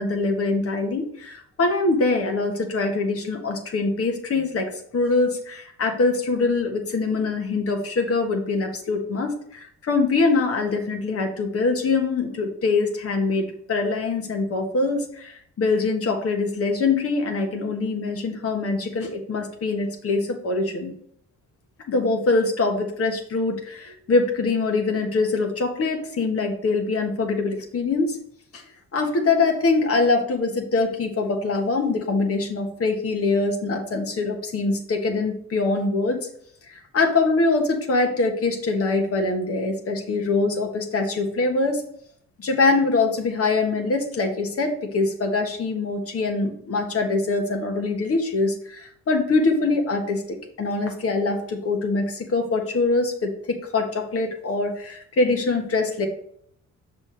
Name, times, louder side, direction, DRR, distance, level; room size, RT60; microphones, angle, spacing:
voice 1, 0.0-20.9 21.9-28.2 28.5-28.6 28.9-36.3 36.7-41.8 42.4-56.1, left 3 dB, 50° left, 3 dB, 1.3 m, -23 dB
5.9 x 5.9 x 3.3 m, 0.66 s
cardioid pair, 90°, 30 cm